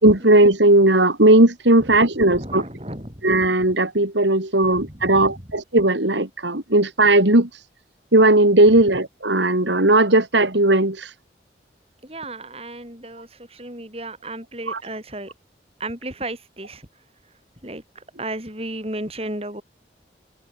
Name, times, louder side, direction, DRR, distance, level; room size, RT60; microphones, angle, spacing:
voice 1, 0.0-2.6 3.2-7.5 8.1-11.1 14.7-14.8, right 1 dB, 85° right, 4.1 m, -17 dB
voice 2, 2.3-3.2 4.7-5.3 12.0-15.3 15.8-16.9 17.6-19.6, right 1 dB, 35° right, 7.8 m, -34 dB
head